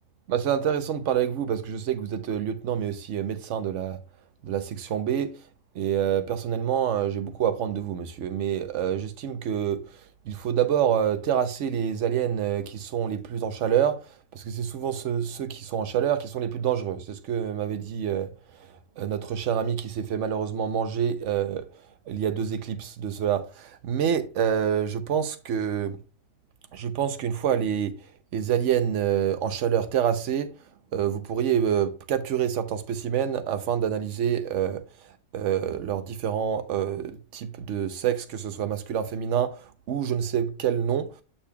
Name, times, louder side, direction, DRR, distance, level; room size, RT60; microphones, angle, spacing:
voice 1, 0.3-4.0 4.4-5.3 5.8-9.8 10.3-14.0 14.3-18.3 19.0-21.6 22.1-26.0 26.7-28.0 28.3-30.5 30.9-34.8 35.3-39.5 39.9-41.1, right 9 dB, 70° right, 1.1 m, -27 dB
8.3 x 5.6 x 2.3 m
omnidirectional pair, 1.3 m